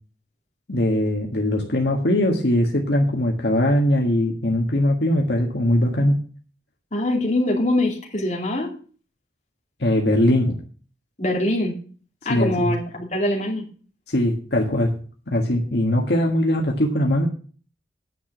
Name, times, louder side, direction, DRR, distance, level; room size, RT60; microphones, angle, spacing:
voice 1, 0.7-6.2 9.8-10.6 12.3-12.7 14.1-15.0 15.3-17.3, left 1 dB, 65° left, 0 dB, 1.6 m, -21 dB
voice 2, 6.9-8.7 11.2-11.7 12.2-13.7, left 1 dB, 40° left, 0 dB, 2.8 m, -23 dB
9.9 x 6.1 x 7.6 m, 0.41 s
head